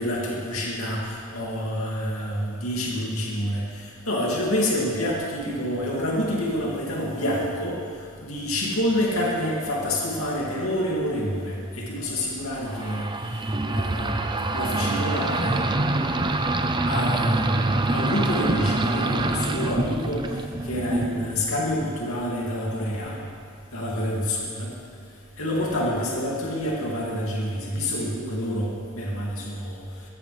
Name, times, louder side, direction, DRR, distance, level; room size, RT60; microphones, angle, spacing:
voice 1, 0.0-7.8 8.2-13.1 13.7-15.7 16.9-20.3 20.6-23.2 23.7-24.7 25.4-28.7 28.9-29.8, equal, 75° left, -3 dB, 2.5 m, -27 dB
sound 1, 12.7-22.0, right 2 dB, 20° right, 0.6 m, -26 dB
16.0 x 14.5 x 3.4 m, 2.2 s
head